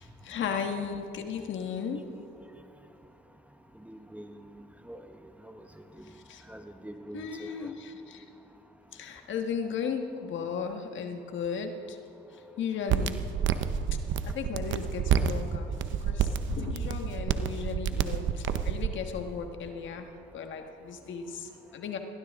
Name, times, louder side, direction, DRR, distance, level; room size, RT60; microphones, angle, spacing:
voice 1, 0.0-2.0 6.1-6.4 7.1-8.2 8.9-12.0 12.3-13.2 14.2-15.7 16.0-20.1 20.3-22.0, left 6 dB, 70° left, 5 dB, 1.6 m, -35 dB
voice 2, 3.8-5.1 5.4-5.6 6.0-6.1 6.5-7.7, right 1 dB, 5° right, 7 dB, 1.0 m, -45 dB
sound 1, 12.9-18.9, right 8 dB, 75° right, 0.8 m, -29 dB
21.5 x 16.0 x 3.7 m, 2.8 s
cardioid pair, 90°, 20 cm